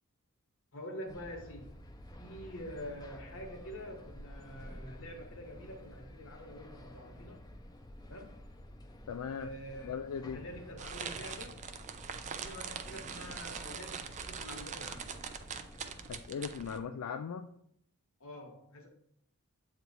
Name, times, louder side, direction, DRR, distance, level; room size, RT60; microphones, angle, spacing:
voice 1, 0.7-1.8 2.2-7.5 8.1-8.4 9.4-10.0 10.3-11.6 12.2-15.2 18.2-18.9, equal, 65° left, 2 dB, 1.2 m, -46 dB
sound 1, 1.1-16.2, left 1 dB, 20° left, 0.5 m, -51 dB
voice 2, 9.1-9.5 9.8-10.4 16.1-17.5, left 6 dB, 85° left, 7 dB, 0.3 m, -38 dB
sound 2, 10.8-16.8, right 6 dB, 35° right, 0.4 m, -43 dB
8.0 x 3.0 x 4.0 m, 0.71 s
head